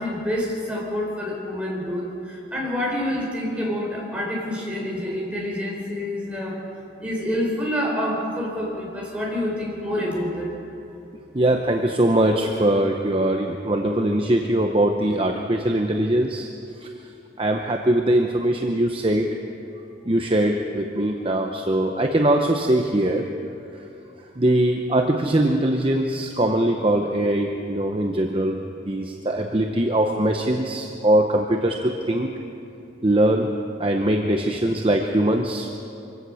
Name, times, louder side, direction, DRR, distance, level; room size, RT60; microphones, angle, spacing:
voice 1, 0.0-6.6 7.0-10.6, left 1 dB, 5° right, -3 dB, 4.0 m, -27 dB
voice 2, 11.3-16.5 16.8-16.9 17.4-19.4 20.1-23.3 24.4-28.6 28.8-32.3 33.0-33.5 33.8-35.7, right 1 dB, 30° right, 3 dB, 0.9 m, -21 dB
24.5 x 16.5 x 6.4 m, 2.8 s
head